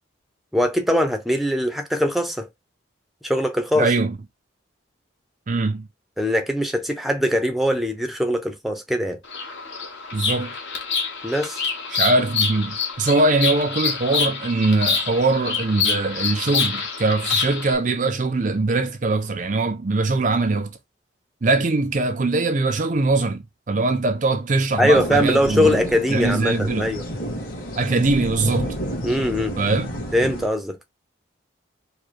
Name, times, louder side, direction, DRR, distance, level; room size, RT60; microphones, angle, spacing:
voice 1, 0.5-2.5 3.2-3.9 6.2-9.2 11.2-11.6 24.8-27.1 29.0-29.6 30.1-30.8, equal, ahead, 0.7 m, -21 dB
voice 2, 3.8-4.2 5.5-5.9 10.1-10.5 11.9-20.8 21.4-25.8 26.1-26.9 27.8-28.8 29.6-29.9, right 3 dB, 40° right, 0.5 m, -22 dB
Bird vocalization bird call bird song, 9.2-17.8, left 5 dB, 65° left, 1.6 m, -26 dB
sound 1, 24.9-30.5, equal, 45° left, 2.0 m, -30 dB
4.8 x 2.3 x 4.5 m
head